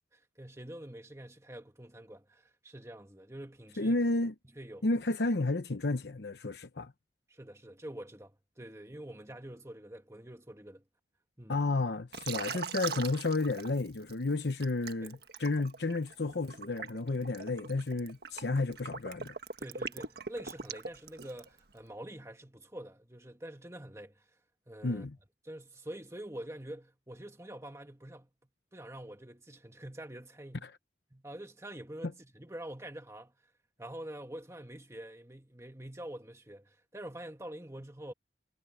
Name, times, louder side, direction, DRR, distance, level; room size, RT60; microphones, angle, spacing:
voice 1, 0.1-4.0 4.6-5.0 7.3-10.8 11.4-11.6 15.0-15.1 19.6-24.2 24.7-25.1 25.4-28.3 28.7-30.7 31.1-33.3 33.8-38.1, right 1 dB, 15° right, 1.8 m, -46 dB
voice 2, 3.8-4.3 4.8-6.9 11.5-19.3 24.8-25.2 30.6-30.7, left 2 dB, 70° left, 0.9 m, -32 dB
Liquid, 12.1-14.1 14.6-21.6, right 5 dB, 60° right, 1.6 m, -41 dB
head